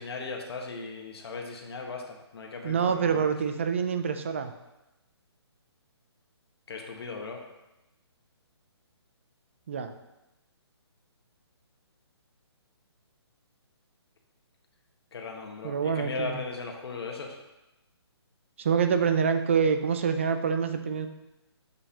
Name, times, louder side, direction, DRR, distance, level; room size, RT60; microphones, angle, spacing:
voice 1, 0.0-3.3 6.7-7.4 15.1-17.4, left 4 dB, 65° left, 1 dB, 1.2 m, -37 dB
voice 2, 2.6-4.5 9.7-9.9 15.6-16.4 18.6-21.1, right 6 dB, 30° right, 8 dB, 0.4 m, -26 dB
7.2 x 5.3 x 2.8 m, 0.96 s
hypercardioid pair, 165°, 14 cm